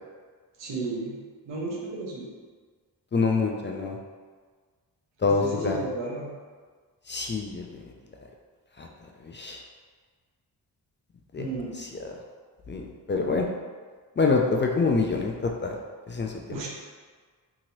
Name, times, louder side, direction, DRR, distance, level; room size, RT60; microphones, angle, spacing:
voice 1, 0.6-1.2 1.4-2.3 5.2-6.3 11.4-11.7 16.5-16.7, right 3 dB, 85° right, -3 dB, 0.8 m, -33 dB
voice 2, 3.1-4.0 5.2-5.8 7.1-7.8 8.8-8.9 9.2-9.6 11.3-11.5 11.8-12.1 12.7-13.5 14.2-15.8 16.1-16.7, left 4 dB, 30° left, 1 dB, 0.3 m, -26 dB
2.9 x 2.8 x 2.6 m, 1.5 s
supercardioid pair, 45°, 43 cm